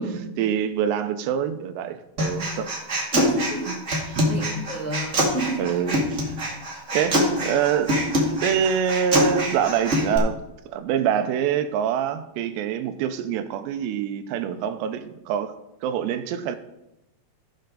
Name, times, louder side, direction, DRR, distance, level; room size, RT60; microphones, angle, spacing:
voice 1, 0.4-2.7 3.7-3.8 4.1-4.2 5.6-6.1 6.9-7.9 8.4-10.4 10.7-15.5 15.8-16.6, right 8 dB, 85° right, 9 dB, 2.8 m, -25 dB
Human voice, 2.2-10.2, equal, 45° right, 0.9 m, -24 dB
voice 2, 3.1-3.8 4.1-5.6, right 1 dB, 20° left, -5 dB, 0.4 m, -29 dB
17.5 x 6.5 x 3.9 m, 0.89 s
omnidirectional pair, 5.0 m